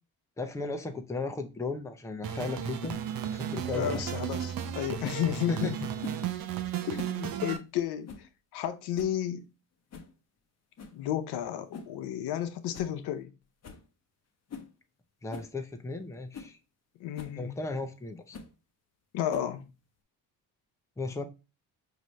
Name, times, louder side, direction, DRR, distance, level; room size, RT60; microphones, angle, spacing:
voice 1, 0.4-2.9 3.3-4.0 5.5-5.8 15.2-16.6 17.4-18.4 21.0-21.2, left 3 dB, 10° left, 0.6 m, -35 dB
sound 1, 2.2-7.6, right 9 dB, 60° right, 0.7 m, -34 dB
sound 2, 2.8-3.0 3.9-4.2 5.0-5.3 6.0-6.3 6.8-7.2 7.5-7.6 8.1-8.3 8.6-8.7 8.9-9.2 9.9-10.1 10.8-11.0 11.7-12.0 12.3-12.4 12.7-12.9 13.2-13.3 13.6-13.9 14.5-14.7 15.3-15.5 16.0-16.1 16.3-16.5 17.1-17.4 18.3-18.5 19.3-19.7, left 4 dB, 40° left, 0.8 m, -43 dB
voice 2, 3.7-5.8 6.2-6.3 6.9-8.1 8.5-9.5 10.9-13.3 17.0-17.6 19.1-19.7, left 10 dB, 75° left, 0.7 m, -32 dB
4.9 x 2.7 x 3.1 m
supercardioid pair, 65°, 39 cm